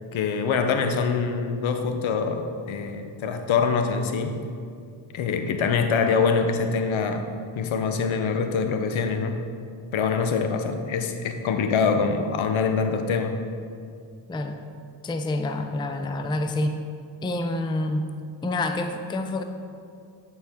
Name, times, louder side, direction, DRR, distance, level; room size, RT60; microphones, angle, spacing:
voice 1, 0.1-4.4 5.1-7.2 7.6-9.4 9.9-13.3, left 5 dB, 75° left, 6 dB, 0.7 m, -24 dB
voice 2, 14.3-14.6 15.0-16.8 17.2-18.1 18.4-19.4, left 2 dB, 10° left, 6 dB, 0.4 m, -27 dB
8.7 x 4.4 x 3.5 m, 2.3 s
cardioid pair, 65°, 48 cm